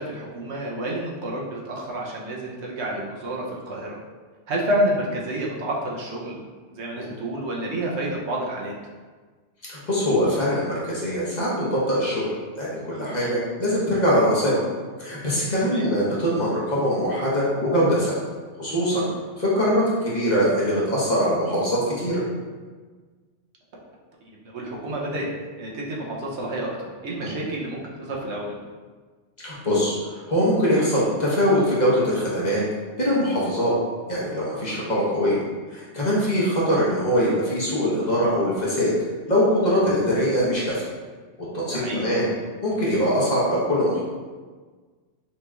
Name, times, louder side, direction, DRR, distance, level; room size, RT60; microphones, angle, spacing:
voice 1, 0.0-4.0 4.5-6.4 6.7-8.7 13.2-13.3 15.7-15.9 24.4-25.3 25.6-28.6 34.7-34.8 41.7-42.1, right 1 dB, 70° right, -2 dB, 1.0 m, -29 dB
voice 2, 9.6-12.2 12.6-14.6 15.0-18.1 18.6-19.0 19.4-22.2 27.2-27.3 29.4-32.6 33.0-33.7 34.1-35.4 35.7-38.9 39.3-40.9 41.5-42.3 42.6-44.0, equal, 40° left, -7 dB, 1.1 m, -22 dB
5.8 x 3.0 x 2.3 m, 1.4 s
omnidirectional pair, 1.2 m